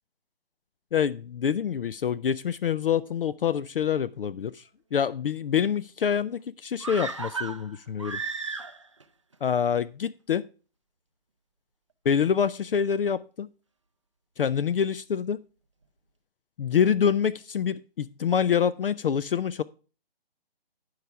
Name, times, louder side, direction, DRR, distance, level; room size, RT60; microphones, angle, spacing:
voice 1, 0.9-4.6 4.9-8.2 9.4-10.4 12.1-13.5 14.4-15.4 16.6-19.6, left 8 dB, 60° left, 0.4 m, -26 dB
sound 1, 6.8-9.0 9.3-9.4, right 4 dB, 30° right, 0.4 m, -34 dB
11.5 x 4.8 x 4.7 m
hypercardioid pair, 160°, 31 cm